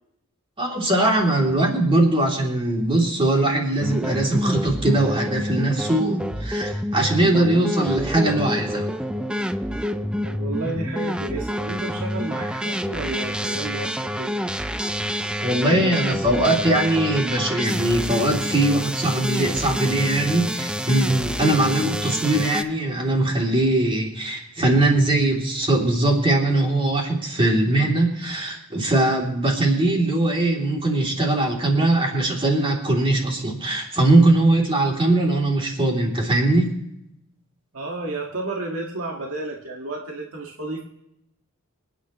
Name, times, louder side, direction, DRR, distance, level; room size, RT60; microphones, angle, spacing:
voice 1, 0.6-8.9 15.4-36.8, right 2 dB, 25° right, -1 dB, 3.1 m, -21 dB
sound 1, 3.8-22.6, equal, 5° right, 0.5 m, -27 dB
voice 2, 10.2-14.4 37.7-40.8, right 2 dB, 80° right, -1 dB, 1.9 m, -31 dB
27.0 x 9.9 x 3.1 m, 0.79 s
head